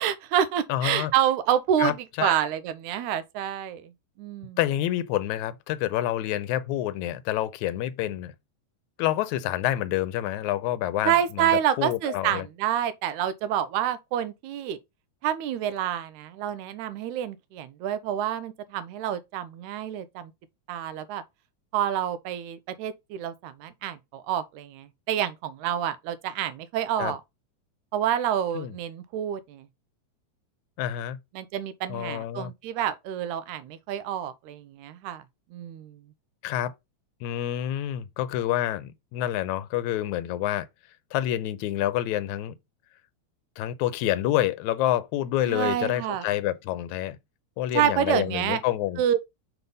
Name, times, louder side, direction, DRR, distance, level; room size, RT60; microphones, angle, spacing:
voice 1, 0.0-1.9 2.2-3.9 4.2-4.6 11.1-14.8 15.2-20.3 20.7-21.2 21.7-27.2 27.9-29.7 31.4-35.2 35.5-36.0 45.4-46.3 47.7-48.6 49.0-49.2, right 10 dB, 85° right, 2.0 m, -28 dB
voice 2, 0.7-1.1 1.8-2.4 4.6-8.3 9.0-11.5 11.8-12.5 27.0-27.2 28.5-28.7 30.8-31.2 31.9-32.5 36.4-36.7 37.2-40.7 41.1-42.5 43.6-47.2 47.6-49.0, left 13 dB, 80° left, 1.9 m, -28 dB
5.9 x 3.4 x 5.4 m
omnidirectional pair, 3.4 m